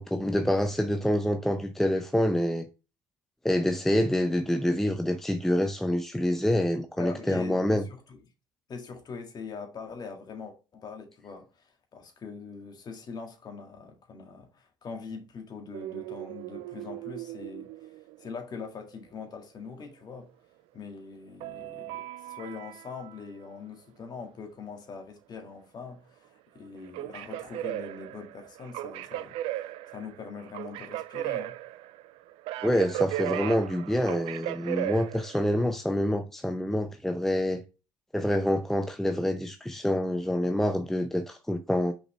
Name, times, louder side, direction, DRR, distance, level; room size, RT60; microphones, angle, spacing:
voice 1, 0.0-2.6 3.4-7.8 32.6-37.6 38.1-41.9, left 1 dB, 5° left, 0.6 m, -27 dB
voice 2, 7.0-8.2 8.7-17.9 18.2-20.3 20.7-29.4 29.9-31.6, left 5 dB, 35° left, 1.9 m, -42 dB
sound 1, 15.7-18.6 21.4-23.2 26.7-35.6, right 14 dB, 55° right, 0.4 m, -36 dB
6.1 x 5.0 x 3.3 m
figure-of-eight pair, 60°, 12 cm